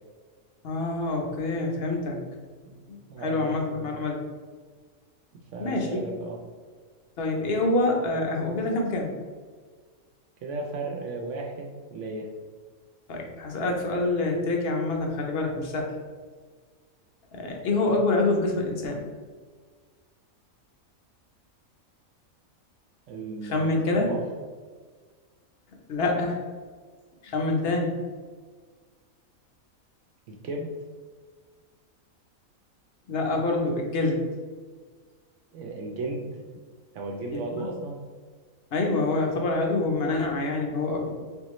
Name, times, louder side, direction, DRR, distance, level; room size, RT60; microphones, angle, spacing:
voice 1, 0.6-2.2 2.9-4.2 5.6-6.0 7.2-9.1 13.1-15.9 17.3-19.0 23.4-24.1 25.9-26.4 27.2-28.0 33.1-34.2 37.3-37.7 38.7-41.1, left 2 dB, 50° left, 1 dB, 0.9 m, -26 dB
voice 2, 3.1-3.9 5.5-6.4 10.4-12.3 23.1-24.2 30.4-30.8 35.5-36.3 36.9-38.0, right 2 dB, 70° right, 0 dB, 0.8 m, -35 dB
3.9 x 3.6 x 3.0 m, 1.5 s
omnidirectional pair, 1.4 m